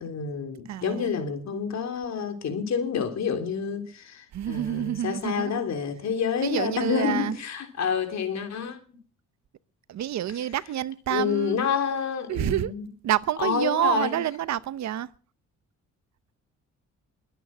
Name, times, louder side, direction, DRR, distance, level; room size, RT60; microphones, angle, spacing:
voice 1, 0.0-8.8 11.1-12.8 13.4-14.2, left 6 dB, 65° left, 3.3 m, -28 dB
voice 2, 0.7-1.1 4.3-5.6 6.4-7.4 9.9-11.6 12.3-12.7 13.0-15.1, right 12 dB, 65° right, 0.9 m, -28 dB
22.0 x 9.1 x 6.2 m
cardioid pair, 90°, 30 cm